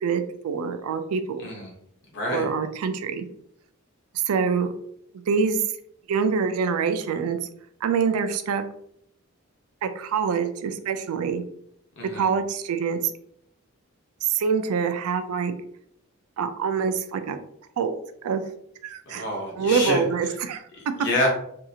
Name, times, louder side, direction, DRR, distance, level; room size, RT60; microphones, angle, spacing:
voice 1, 0.0-1.4 2.3-3.3 4.1-4.7 5.1-5.6 6.1-7.4 7.8-8.6 9.8-11.4 12.1-13.1 14.2-15.5 16.4-17.4 17.8-18.0 18.2-18.4 18.8-19.3 19.6-20.7, right 6 dB, 85° right, 9 dB, 0.3 m, -25 dB
voice 2, 1.4-1.7 2.1-2.5 12.0-12.3 19.1-20.0 20.7-21.3, left 1 dB, 50° left, -1 dB, 0.9 m, -27 dB
2.7 x 2.4 x 2.7 m, 0.70 s
head